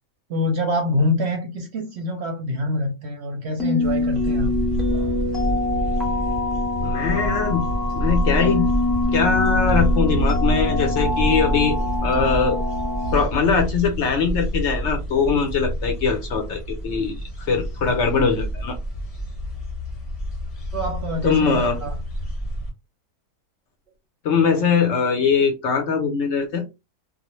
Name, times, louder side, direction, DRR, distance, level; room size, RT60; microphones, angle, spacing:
voice 1, 0.3-4.5 20.7-22.0, left 1 dB, 60° right, 0.8 m, -25 dB
sound 1, 3.6-13.2, left 2 dB, ahead, 0.4 m, -25 dB
sound 2, 3.8-22.7, equal, 35° left, 0.7 m, -27 dB
voice 2, 6.8-7.7 8.0-8.7 9.1-12.6 13.1-18.8 21.2-21.8 24.2-26.6, left 5 dB, 65° left, 0.7 m, -21 dB
2.4 x 2.0 x 2.9 m
omnidirectional pair, 1.5 m